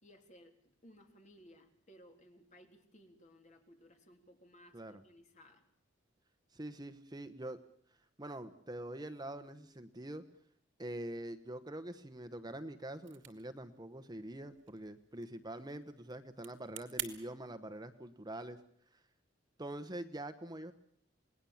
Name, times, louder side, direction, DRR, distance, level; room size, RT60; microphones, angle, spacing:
voice 1, 0.0-5.7, equal, 40° left, 4 dB, 3.5 m, -60 dB
voice 2, 6.5-7.6 8.2-10.2 10.8-18.6 19.6-20.7, right 1 dB, 20° right, 9 dB, 1.1 m, -44 dB
sound 1, 12.9-17.1, right 12 dB, 70° right, 2.7 m, -48 dB
28.0 x 20.0 x 7.2 m, 0.64 s
head